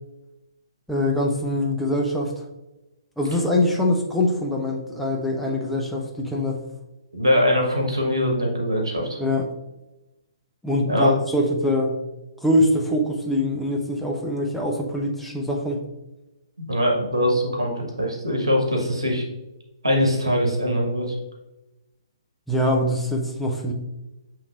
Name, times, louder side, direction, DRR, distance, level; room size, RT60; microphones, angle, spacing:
voice 1, 0.9-2.5 3.2-6.6 9.2-9.5 10.6-12.0 12.4-15.8 22.5-23.7, left 1 dB, ahead, -1 dB, 0.5 m, -23 dB
voice 2, 7.1-9.2 10.8-11.1 16.6-19.2 19.8-21.2, equal, 75° right, 0 dB, 1.1 m, -22 dB
6.9 x 3.1 x 2.3 m, 0.99 s
figure-of-eight pair, 130°, 3 cm